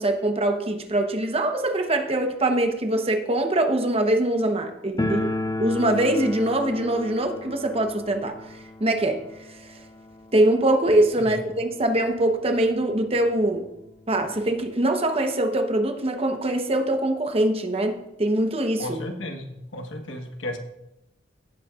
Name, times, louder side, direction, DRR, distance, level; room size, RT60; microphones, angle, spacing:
voice 1, 0.0-5.3 5.6-8.3 8.8-9.2 10.3-13.6 14.1-19.0, right 1 dB, 30° right, 5 dB, 0.9 m, -23 dB
sound 1, 5.0-11.7 11.9-12.0 12.3-12.4 13.1-13.2 13.5-14.7, left 2 dB, 20° left, 0.5 m, -33 dB
voice 2, 18.8-20.6, left 1 dB, 85° left, 4 dB, 1.3 m, -34 dB
16.5 x 7.8 x 2.4 m, 0.86 s
head